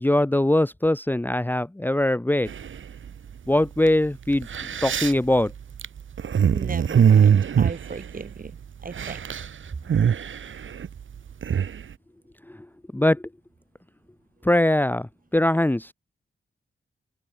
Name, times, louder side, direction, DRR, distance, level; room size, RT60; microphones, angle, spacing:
voice 1, 0.0-2.5 3.5-4.5 4.8-5.5 12.9-13.2 14.4-15.9, left 1 dB, 10° left, 1.0 m, -21 dB
sound 1, 2.5-3.1 3.9-4.0 4.3-8.6 8.8-9.5 9.7-11.8, right 8 dB, 70° right, 1.3 m, -22 dB
voice 2, 6.5-8.5 8.8-9.2, right 4 dB, 40° right, 3.2 m, -37 dB
wide cardioid pair, 95°, 21 cm